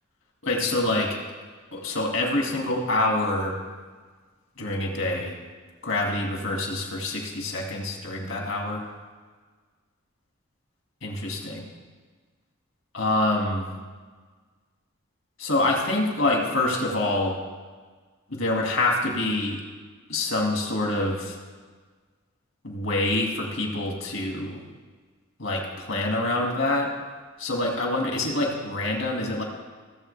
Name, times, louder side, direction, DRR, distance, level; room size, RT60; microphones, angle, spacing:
voice 1, 0.4-1.2 1.7-3.6 4.6-5.4 5.8-8.8 11.0-11.7 12.9-13.7 15.4-17.4 18.3-19.6 20.1-21.4 22.6-24.6 25.4-26.9 27.4-29.4, left 2 dB, 70° left, 0 dB, 2.1 m, -26 dB
16.5 x 7.6 x 3.3 m, 1.5 s
head